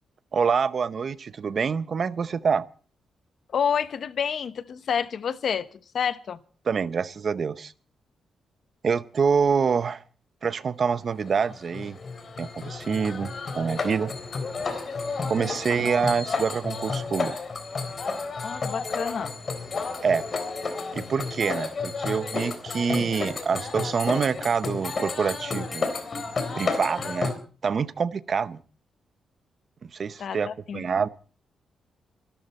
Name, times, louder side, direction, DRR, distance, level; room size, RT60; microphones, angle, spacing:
voice 1, 0.3-2.7 6.7-7.7 8.8-10.0 10.4-12.0 12.4-14.1 15.3-17.4 20.0-20.3 20.9-25.9 26.5-28.6 29.8-31.1, right 6 dB, 45° right, 0.7 m, -26 dB
voice 2, 3.5-6.4 15.5-15.8 18.4-19.3 30.2-30.9, left 7 dB, 55° left, 0.9 m, -29 dB
sound 1, 11.2-27.3, left 4 dB, 40° left, 3.6 m, -32 dB
25.0 x 12.5 x 4.3 m
cardioid pair, 140°, 0 cm